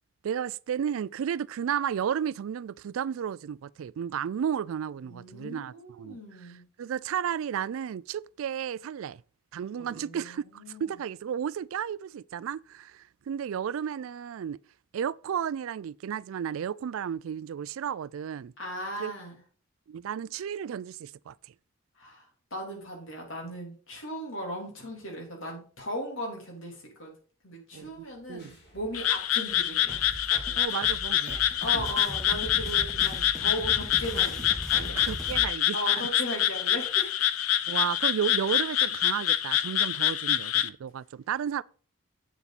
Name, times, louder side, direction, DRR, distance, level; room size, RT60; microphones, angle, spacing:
voice 1, 0.2-6.5 6.8-9.2 9.5-14.6 14.9-18.5 19.0-19.1 19.9-21.4 27.7-28.5 30.6-31.5 31.7-31.9 35.0-36.1 37.7-41.6, right 8 dB, 75° right, 0.3 m, -33 dB
voice 2, 5.1-6.6 9.8-11.0 18.6-19.4 22.0-27.1 27.4-30.0 31.6-35.0 35.7-37.7, equal, 70° left, 3.4 m, -37 dB
sound 1, 27.8-32.8, left 1 dB, 50° left, 2.4 m, -54 dB
Frog, 28.9-40.7, left 12 dB, 85° left, 0.6 m, -26 dB
sound 2, 29.9-35.5, equal, ahead, 1.7 m, -39 dB
8.2 x 7.1 x 4.1 m
head